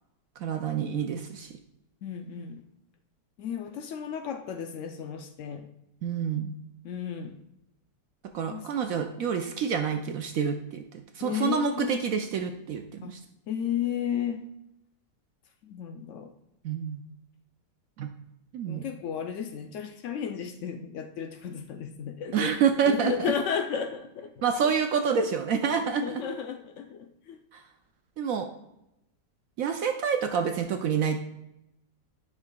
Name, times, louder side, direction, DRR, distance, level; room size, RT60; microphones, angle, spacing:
voice 1, 0.4-1.6 6.0-6.5 8.3-13.2 16.6-17.0 18.0-18.1 18.5-18.8 22.3-23.3 24.4-26.2 27.5-27.6 28.2-28.5 29.6-31.2, right 6 dB, 70° right, 5 dB, 0.8 m, -28 dB
voice 2, 2.0-2.6 3.4-5.7 6.8-7.4 8.5-8.7 11.2-12.0 13.0-13.2 13.5-14.5 15.6-16.3 18.6-22.5 22.9-24.7 26.0-27.4, left 8 dB, 90° left, 6 dB, 0.6 m, -33 dB
11.0 x 5.8 x 2.2 m, 0.86 s
omnidirectional pair, 1.9 m